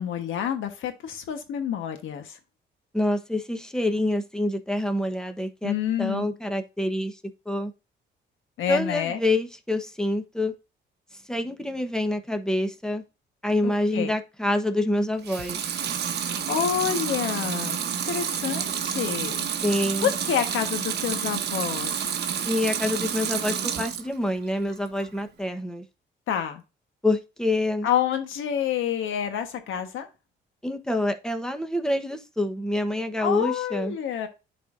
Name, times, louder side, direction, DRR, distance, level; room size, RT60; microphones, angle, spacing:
voice 1, 0.0-2.4 5.6-6.4 8.6-9.2 13.6-14.1 16.1-17.8 18.0-19.5 20.0-21.9 26.3-26.6 27.8-30.1 33.2-34.3, left 9 dB, 80° left, 1.4 m, -28 dB
voice 2, 2.9-7.1 7.5-7.7 8.7-10.5 11.3-13.0 13.4-15.7 19.6-20.1 22.4-25.8 27.0-27.9 30.6-33.9, left 1 dB, 5° left, 1.2 m, -26 dB
Water tap faucet / Sink (filling or washing) / Liquid, 15.2-24.1 24.5-25.3, right 8 dB, 60° right, 1.0 m, -29 dB
11.0 x 4.2 x 2.7 m
cardioid pair, 90°, 20 cm